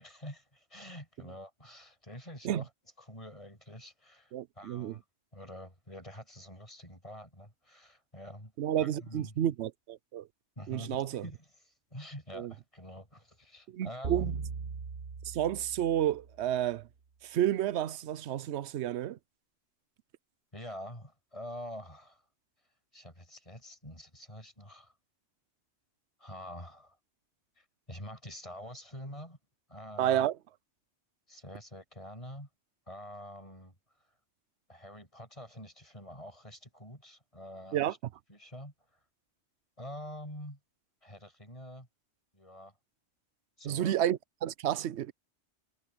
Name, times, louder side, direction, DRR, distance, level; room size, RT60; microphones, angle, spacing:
voice 1, 0.0-2.7 3.0-5.0 5.3-8.5 8.8-9.4 10.6-11.4 11.6-14.4 20.5-22.2 22.9-24.9 26.2-27.0 27.6-29.4 29.7-30.2 31.3-32.5 32.9-33.8 34.7-38.0 38.3-38.7 39.8-40.6 41.0-41.9 42.3-42.8 43.6-43.9, equal, 30° left, 7.9 m, -46 dB
voice 2, 4.3-5.0 8.6-10.3 10.7-11.2 12.3-12.5 13.7-14.3 15.2-16.9 17.2-19.2 30.0-30.4 37.7-37.9 43.6-45.1, right 11 dB, 70° right, 0.9 m, -31 dB
sound 1, 14.0-16.5, right 5 dB, 50° right, 1.5 m, -39 dB
omnidirectional pair, 1.2 m